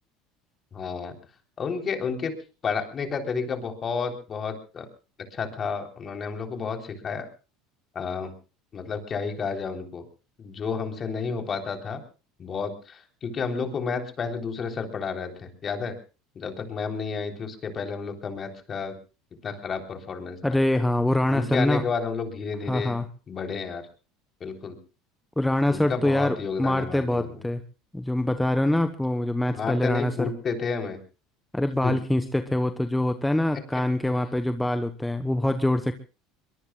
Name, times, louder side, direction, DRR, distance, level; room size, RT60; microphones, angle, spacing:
voice 1, 0.7-1.1 1.6-2.3 2.6-4.9 5.3-7.3 8.0-8.3 8.7-10.0 10.4-12.0 12.4-16.0 16.4-18.9 19.4-20.4 21.3-23.0 23.3-23.9 24.4-24.8 25.7-27.4 29.5-31.0 31.8-31.9 33.7-33.8, left 5 dB, 35° left, 4 dB, 3.6 m, -31 dB
voice 2, 20.4-21.8 22.7-23.1 25.4-27.6 27.9-30.3 31.5-35.9, left 1 dB, 5° left, 9 dB, 1.0 m, -24 dB
22.5 x 22.5 x 2.4 m, 0.33 s
hypercardioid pair, 90°, 0 cm